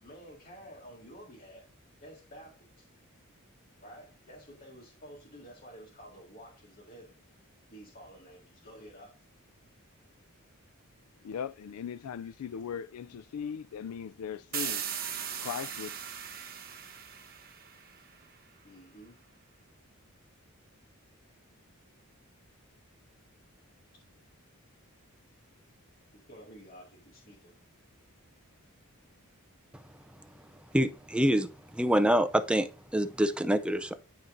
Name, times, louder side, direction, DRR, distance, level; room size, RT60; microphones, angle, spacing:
voice 1, 0.0-1.7 2.0-2.9 3.8-7.2 7.7-9.1 18.6-19.2 26.1-27.5, equal, 45° left, 2.0 m, -51 dB
voice 2, 11.2-14.8 15.4-15.9, left 7 dB, 75° left, 0.3 m, -38 dB
sound 1, 14.5-18.1, right 8 dB, 45° right, 1.0 m, -38 dB
voice 3, 30.7-31.5 31.7-33.9, right 1 dB, 5° right, 0.5 m, -26 dB
12.5 x 4.3 x 2.6 m
head